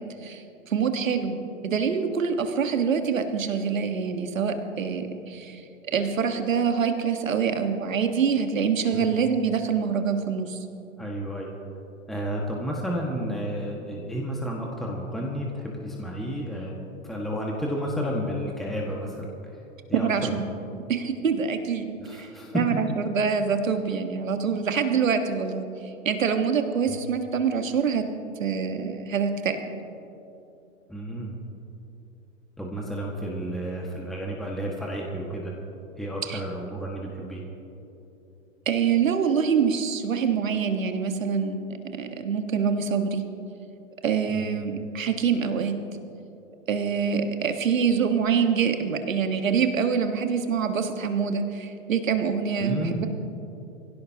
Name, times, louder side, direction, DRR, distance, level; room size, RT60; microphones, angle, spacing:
voice 1, 0.0-10.6 19.9-20.4 20.9-28.0 28.4-29.6 36.2-36.4 38.7-41.7 42.0-43.2 44.0-45.7 46.7-53.1, right 6 dB, 75° right, 7 dB, 1.6 m, -25 dB
voice 2, 11.0-11.5 12.1-16.8 17.0-19.3 19.9-20.6 22.0-22.8 26.9-27.0 30.9-31.4 32.6-35.5 36.0-37.4 44.3-44.4 52.6-53.1, equal, ahead, -2 dB, 1.7 m, -31 dB
25.0 x 16.5 x 2.9 m, 2.9 s
figure-of-eight pair, 100°, 40 cm